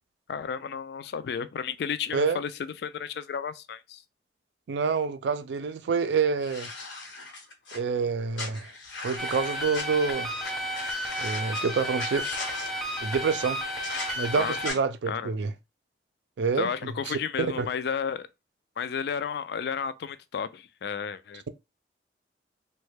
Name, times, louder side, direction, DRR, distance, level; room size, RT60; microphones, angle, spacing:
voice 1, 0.3-4.0 14.3-14.6 15.1-15.3 16.6-18.3 18.8-21.4, left 7 dB, 60° left, 0.3 m, -32 dB
voice 2, 4.7-6.7 7.7-8.7 9.0-10.3 11.2-12.3 13.0-13.6 14.2-15.5 16.4-17.2 17.6-17.7, right 5 dB, 75° right, 0.4 m, -27 dB
sound 1, 6.4-7.8 8.3-9.8 10.4-10.5 10.7-11.6 12.0-12.7 13.8-14.1 14.6-14.8, left 3 dB, 85° left, 0.9 m, -37 dB
sound 2, 9.2-14.7, equal, ahead, 0.5 m, -33 dB
3.1 x 2.2 x 3.2 m
head